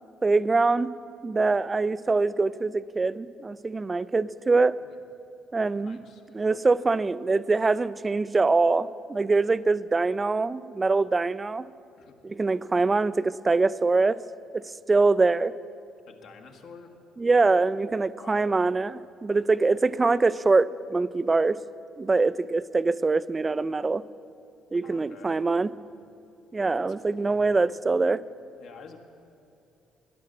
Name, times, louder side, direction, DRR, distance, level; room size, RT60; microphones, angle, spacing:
voice 1, 0.2-0.9 1.2-4.8 5.5-6.0 6.3-11.7 12.2-14.2 14.5-15.5 17.2-21.6 22.0-24.0 24.7-25.7 26.5-28.2, right 3 dB, 30° right, 18 dB, 0.4 m, -24 dB
voice 2, 5.8-6.2 12.0-12.1 16.1-17.0 18.2-18.5 24.8-25.4 26.7-27.4 28.6-29.0, left 5 dB, 65° left, 3 dB, 1.4 m, -49 dB
12.0 x 10.5 x 7.4 m, 2.6 s
hypercardioid pair, 50°, 0 cm